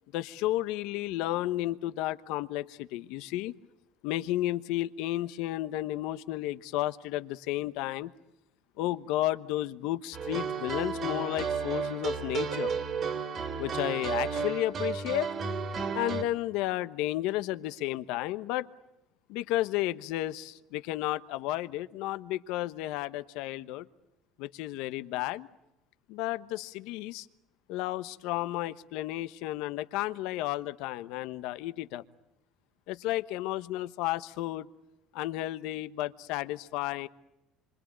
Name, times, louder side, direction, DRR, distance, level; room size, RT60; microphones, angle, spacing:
voice 1, 0.1-3.5 4.0-8.1 8.8-12.7 13.6-15.3 15.9-18.7 19.3-23.8 24.4-25.5 26.1-27.3 27.7-32.0 32.9-34.7 35.1-37.1, left 15 dB, 75° left, 12 dB, 1.1 m, -32 dB
sound 1, 10.1-16.2, right 5 dB, 45° right, 3.1 m, -32 dB
27.0 x 25.0 x 8.8 m, 0.91 s
cardioid pair, 120°, 0 cm